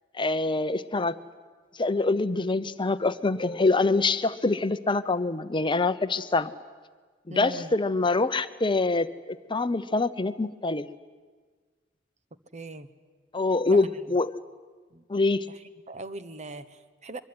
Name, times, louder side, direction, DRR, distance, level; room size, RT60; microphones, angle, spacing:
voice 1, 0.1-1.1 1.8-6.5 7.3-10.9 13.3-14.3 15.1-15.5, left 3 dB, 25° left, 12 dB, 0.8 m, -25 dB
voice 2, 7.3-7.7 12.5-12.9 13.6-14.1 14.9-15.0 15.5-17.2, right 2 dB, 35° right, 12 dB, 1.2 m, -40 dB
23.5 x 23.0 x 9.7 m, 1.5 s
head